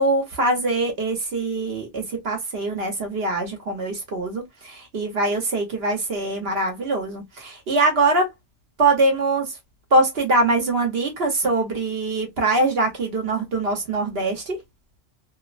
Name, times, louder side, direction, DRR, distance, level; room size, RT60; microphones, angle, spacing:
voice 1, 0.0-8.3 8.8-9.6 9.9-14.6, right 2 dB, 60° right, 1.0 m, -23 dB
2.8 x 2.0 x 2.4 m
omnidirectional pair, 1.2 m